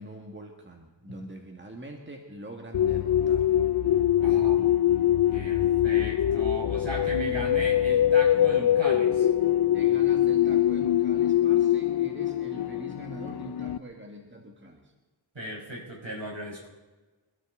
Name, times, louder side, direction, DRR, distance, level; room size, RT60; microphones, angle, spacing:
voice 1, 0.0-3.7 9.7-14.9, right 1 dB, 25° right, 1 dB, 2.0 m, -44 dB
sound 1, 2.7-13.8, left 11 dB, 55° left, 0.5 m, -23 dB
voice 2, 4.2-4.6 5.3-9.3 15.4-16.7, right 1 dB, 65° right, -2 dB, 5.3 m, -37 dB
27.0 x 12.5 x 4.0 m, 1.2 s
wide cardioid pair, 50°, 48 cm